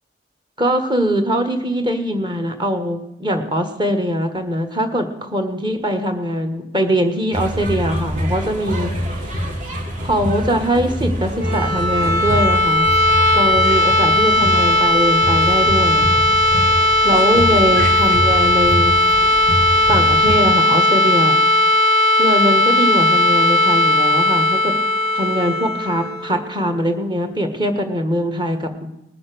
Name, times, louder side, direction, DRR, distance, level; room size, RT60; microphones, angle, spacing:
voice 1, 0.6-8.9 10.0-12.9 13.3-16.2 17.0-18.9 19.9-21.4 22.2-24.7 25.1-28.7, equal, 25° right, 6 dB, 1.7 m, -21 dB
sound 1, 7.3-20.4, equal, 45° right, 2.2 m, -25 dB
sound 2, 11.3-27.1, left 2 dB, 80° right, 2.9 m, -16 dB
19.5 x 7.1 x 6.9 m, 0.89 s
head